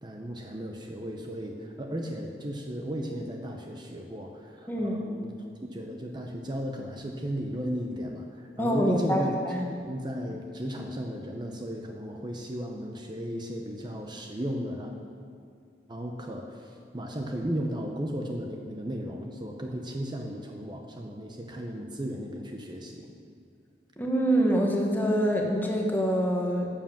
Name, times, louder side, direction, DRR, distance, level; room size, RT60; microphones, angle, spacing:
voice 1, 0.0-5.3 5.7-9.3 9.7-14.9 15.9-23.1, equal, 25° right, 2 dB, 0.8 m, -35 dB
voice 2, 4.7-5.0 8.6-9.6 24.0-26.7, equal, 10° left, 0 dB, 1.5 m, -25 dB
11.5 x 7.4 x 7.2 m, 2.4 s
head